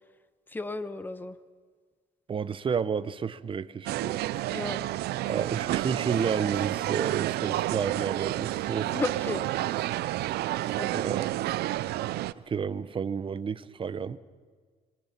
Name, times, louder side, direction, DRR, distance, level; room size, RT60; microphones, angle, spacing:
voice 1, 0.5-1.4 4.5-4.8 8.9-9.4 10.8-10.9, left 2 dB, 10° left, 1.0 m, -33 dB
voice 2, 2.3-4.2 5.3-8.9 10.9-11.3 12.5-14.2, right 6 dB, 30° right, 0.8 m, -31 dB
sound 1, 3.9-4.1 4.3-4.5 4.8-5.0 5.2-5.4 5.7-5.9 6.2-6.3 6.6-6.8 7.1-7.2 7.5-7.7 8.0-8.1 8.4-8.6 8.9-9.0 9.3-9.9 10.2-10.4 10.7-10.8, left 6 dB, 40° left, 1.6 m, -53 dB
sound 2, 3.9-12.3, right 15 dB, 75° right, 0.6 m, -30 dB
26.5 x 23.0 x 5.9 m
cardioid pair, 110°, 17 cm